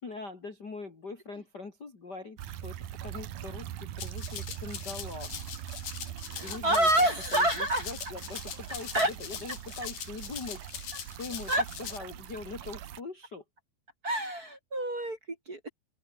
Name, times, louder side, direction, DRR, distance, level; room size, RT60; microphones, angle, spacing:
voice 1, 0.0-2.8 3.0-5.4 6.4-6.9 7.3-11.5 11.8-13.4, left 4 dB, 30° left, 3.0 m, -42 dB
sound 1, 2.4-13.0, right 12 dB, 65° right, 2.7 m, -42 dB
Rattle (instrument), 4.0-12.0, left 9 dB, 65° left, 4.0 m, -42 dB
voice 2, 6.3-7.8 8.9-9.1 11.5-11.6 14.0-15.7, right 1 dB, 25° right, 2.6 m, -27 dB
open air
omnidirectional pair, 4.4 m